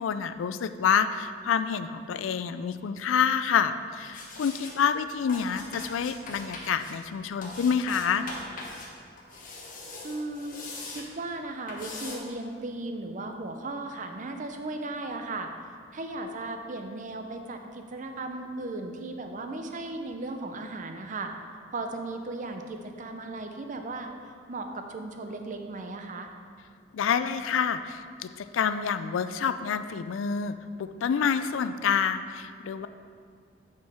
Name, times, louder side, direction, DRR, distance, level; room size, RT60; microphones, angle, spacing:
voice 1, 0.0-8.3 26.9-32.9, left 7 dB, 90° left, 11 dB, 0.4 m, -28 dB
sound 1, 4.0-4.7 5.3-6.9 7.4-8.9 9.2-11.1 11.7-12.2, left 2 dB, 45° left, 1.2 m, -41 dB
voice 2, 10.0-15.5 15.9-21.3 21.7-26.3, right 2 dB, 40° right, 5 dB, 0.6 m, -36 dB
8.3 x 4.5 x 4.8 m, 2.1 s
head